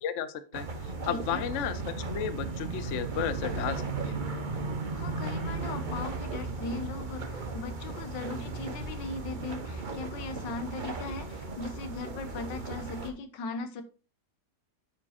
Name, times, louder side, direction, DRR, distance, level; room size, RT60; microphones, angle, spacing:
voice 1, 0.0-4.1, left 9 dB, 60° left, 13 dB, 0.8 m, -34 dB
sound 1, 0.5-13.1, right 3 dB, 35° right, 0.9 m, -36 dB
voice 2, 1.0-1.4 4.9-13.8, left 3 dB, 80° left, 10 dB, 1.7 m, -39 dB
9.3 x 4.9 x 4.2 m, 0.34 s
omnidirectional pair, 1.9 m